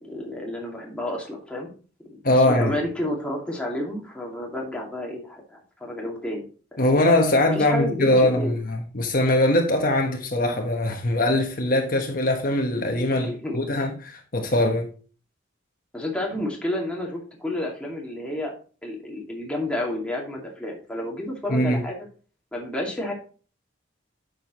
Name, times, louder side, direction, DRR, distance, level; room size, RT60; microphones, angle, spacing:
voice 1, 0.0-1.7 2.1-6.5 6.7-6.8 7.5-8.6 13.1-13.7 15.9-18.5 18.8-22.1 22.5-23.1, left 1 dB, 5° left, 2.3 m, -31 dB
voice 2, 2.2-2.8 6.8-14.9 21.5-21.8, left 1 dB, 50° left, 1.2 m, -22 dB
9.2 x 6.6 x 3.0 m
head